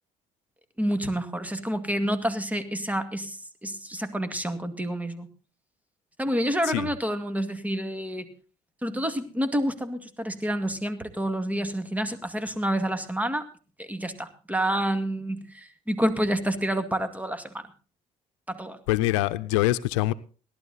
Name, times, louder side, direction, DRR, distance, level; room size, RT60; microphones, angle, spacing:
voice 1, 0.8-5.3 6.2-8.3 8.8-13.5 13.8-17.6 18.5-18.8, equal, 10° right, 9 dB, 2.2 m, -28 dB
voice 2, 18.9-20.1, left 16 dB, 85° left, 14 dB, 0.7 m, -24 dB
17.5 x 11.5 x 4.1 m, 0.37 s
hypercardioid pair, 65°, 16 cm